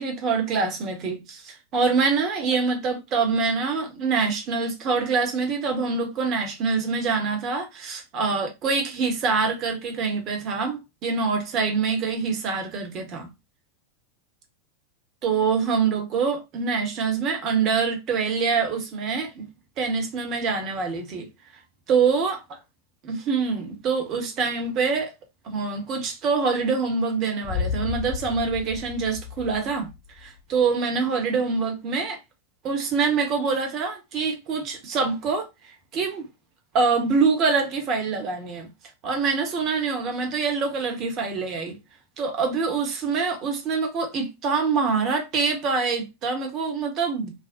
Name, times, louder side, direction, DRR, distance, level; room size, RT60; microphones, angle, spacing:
voice 1, 0.0-13.3 15.2-19.4 19.8-21.3 21.9-22.4 23.0-25.1 25.4-29.9 30.2-32.2 32.6-35.5 35.9-36.3 36.7-38.7 39.0-41.8 42.2-47.3, right 5 dB, 35° right, 0.8 m, -25 dB
Boom, 27.4-30.4, left 7 dB, 35° left, 0.9 m, -32 dB
2.4 x 2.0 x 2.5 m
figure-of-eight pair, 90°, 0 cm